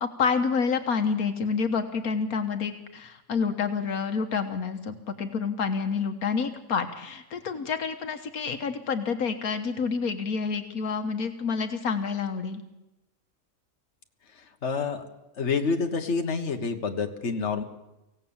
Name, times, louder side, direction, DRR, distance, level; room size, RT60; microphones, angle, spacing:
voice 1, 0.0-12.6, left 5 dB, 80° left, 6 dB, 1.7 m, -28 dB
voice 2, 14.6-15.0 15.4-17.6, left 5 dB, 50° left, 5 dB, 1.8 m, -28 dB
24.5 x 17.0 x 7.3 m, 0.97 s
omnidirectional pair, 1.5 m